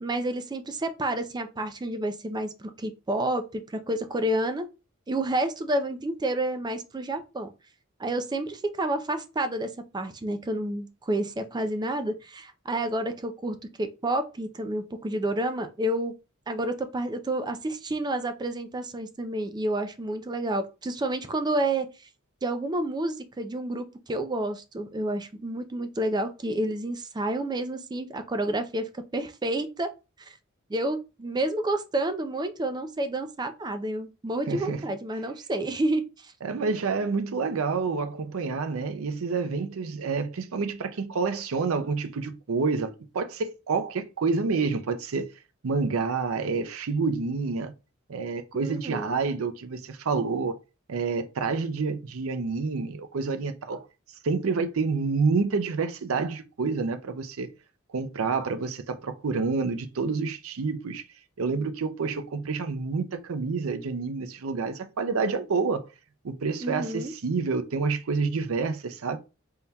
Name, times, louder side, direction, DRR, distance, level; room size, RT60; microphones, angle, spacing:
voice 1, 0.0-4.7 5.1-7.5 8.0-16.1 16.5-21.9 22.4-29.9 30.3-30.4 30.7-36.3 48.5-49.2 66.6-67.1, right 1 dB, 20° right, 0.4 m, -29 dB
voice 2, 34.5-34.8 36.4-45.3 45.6-47.7 48.1-50.6 50.9-53.8 54.2-57.5 57.9-61.0 61.4-65.9 66.2-69.2, right 4 dB, 70° right, 0.5 m, -28 dB
4.1 x 3.7 x 2.2 m
head